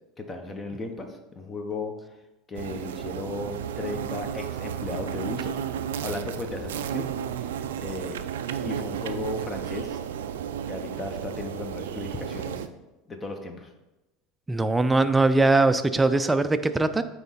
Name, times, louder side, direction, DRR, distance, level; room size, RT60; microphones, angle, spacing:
voice 1, 0.2-1.9 2.5-5.6 6.0-7.1 7.4-8.2 8.6-10.0 10.7-12.7 13.1-13.7, left 2 dB, 25° left, 5 dB, 1.1 m, -35 dB
sound 1, 2.5-12.7, right 9 dB, 85° right, 0.4 m, -33 dB
voice 2, 14.5-17.0, right 2 dB, 15° right, 10 dB, 0.5 m, -21 dB
9.0 x 3.2 x 4.1 m, 1.0 s
hypercardioid pair, 90°, 0 cm